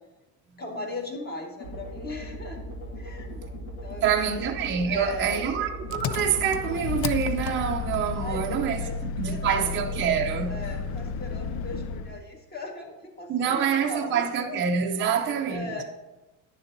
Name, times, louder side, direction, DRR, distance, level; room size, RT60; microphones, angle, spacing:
voice 1, 0.6-2.6 2.9-3.4 3.8-4.4 4.9-5.5 8.1-9.0 9.2-10.1 10.5-14.6 15.0-15.8, left 2 dB, 25° left, 1.5 m, -38 dB
sound 1, 1.6-9.8, equal, 60° left, 1.9 m, -39 dB
voice 2, 4.0-10.5 13.3-15.8, right 7 dB, 30° right, 0.6 m, -26 dB
Engine, 5.9-12.2, left 6 dB, 45° left, 0.4 m, -32 dB
10.0 x 6.9 x 2.7 m
cardioid pair, 125°, 40 cm